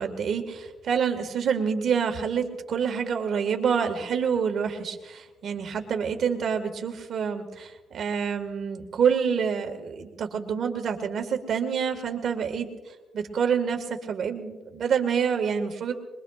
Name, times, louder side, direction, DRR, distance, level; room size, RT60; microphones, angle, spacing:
voice 1, 0.0-15.9, right 7 dB, 60° right, 6 dB, 1.8 m, -27 dB
22.0 x 22.0 x 2.5 m, 1.2 s
cardioid pair, 90°, 0 cm